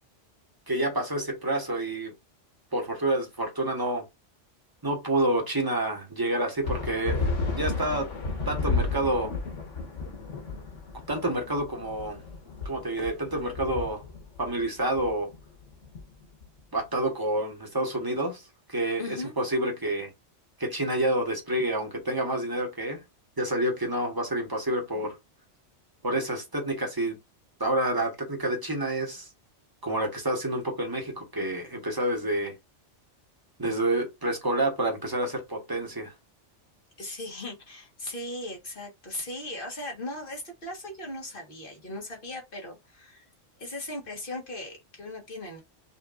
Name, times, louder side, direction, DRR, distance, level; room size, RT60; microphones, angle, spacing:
voice 1, 0.7-2.1 2.7-4.0 4.8-7.3 7.5-8.1 8.5-9.3 11.1-12.2 12.6-14.0 14.4-15.3 16.7-18.4 18.7-20.1 20.6-23.0 23.4-25.2 26.0-27.2 27.6-29.3 29.8-32.5 33.6-36.1, right 1 dB, 20° right, 1.2 m, -28 dB
sound 1, 6.6-16.6, left 3 dB, 85° left, 1.5 m, -33 dB
voice 2, 19.0-19.3 37.0-43.3 43.6-45.6, left 1 dB, 50° left, 1.6 m, -38 dB
5.7 x 2.6 x 2.5 m
omnidirectional pair, 1.2 m